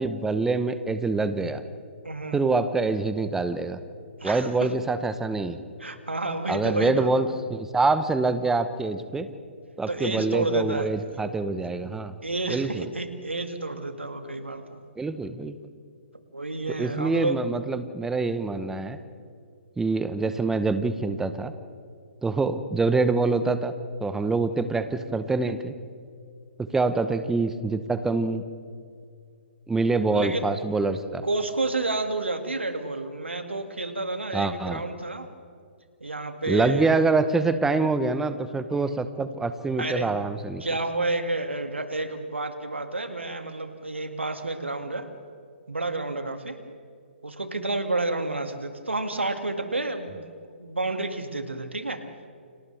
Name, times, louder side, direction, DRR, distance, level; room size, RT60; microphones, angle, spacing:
voice 1, 0.0-1.6 2.3-3.8 4.2-5.6 6.5-9.3 9.8-12.1 12.5-12.9 15.0-15.5 16.7-19.0 19.8-21.5 22.2-23.7 24.0-25.7 26.6-28.4 29.7-31.2 34.3-34.8 36.5-40.6, right 3 dB, 5° right, 11 dB, 0.9 m, -25 dB
voice 2, 2.0-2.5 4.2-4.5 5.8-7.2 9.9-10.9 12.2-14.8 16.3-17.4 30.1-30.4 31.2-35.3 36.0-37.0 38.7-39.0 39.8-40.1 40.6-45.1 45.7-46.6 47.2-50.3 50.6-52.0, right 2 dB, 85° right, 7 dB, 2.3 m, -30 dB
30.0 x 26.0 x 3.5 m, 2.3 s
figure-of-eight pair, 130°, 6 cm